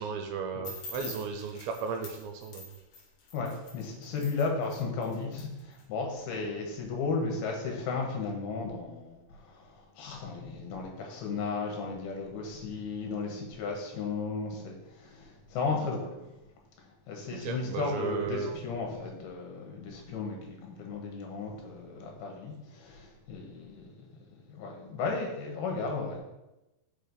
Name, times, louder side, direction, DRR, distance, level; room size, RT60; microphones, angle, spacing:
voice 1, 0.0-2.7 17.3-18.5, right 5 dB, 80° right, 4 dB, 2.3 m, -35 dB
sound 1, 0.6-5.8, left 2 dB, 65° left, 2.7 m, -46 dB
voice 2, 3.3-16.3 17.1-23.9 24.3-26.2, left 4 dB, 80° left, 1 dB, 3.1 m, -35 dB
6.4 x 5.6 x 4.0 m, 0.99 s
omnidirectional pair, 4.5 m